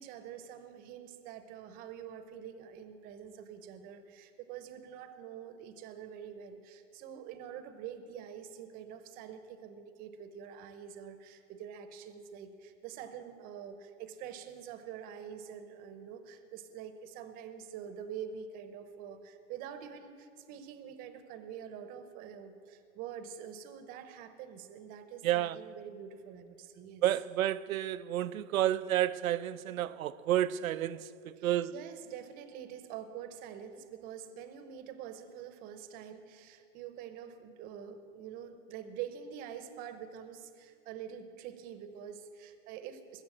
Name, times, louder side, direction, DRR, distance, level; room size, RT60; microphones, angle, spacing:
voice 1, 0.0-27.0 31.4-43.2, right 8 dB, 20° right, 0.8 m, -46 dB
voice 2, 25.2-25.6 27.0-31.1 31.4-31.7, right 12 dB, 90° right, 0.6 m, -30 dB
21.0 x 7.1 x 7.8 m
hypercardioid pair, 150°, 40 cm